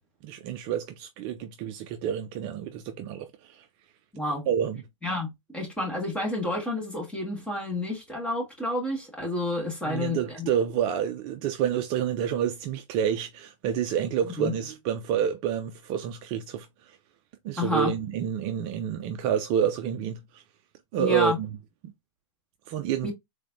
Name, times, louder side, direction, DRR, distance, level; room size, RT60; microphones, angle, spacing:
voice 1, 0.2-3.6 4.5-4.8 9.9-17.0 17.4-20.4 20.9-21.5 22.7-23.1, right 9 dB, 30° right, 0.4 m, -28 dB
voice 2, 4.1-4.5 5.0-10.5 14.4-14.5 17.6-17.9 21.0-21.4 23.0-23.1, left 1 dB, 5° left, 1.7 m, -29 dB
3.9 x 3.2 x 2.6 m
hypercardioid pair, 125°, 17 cm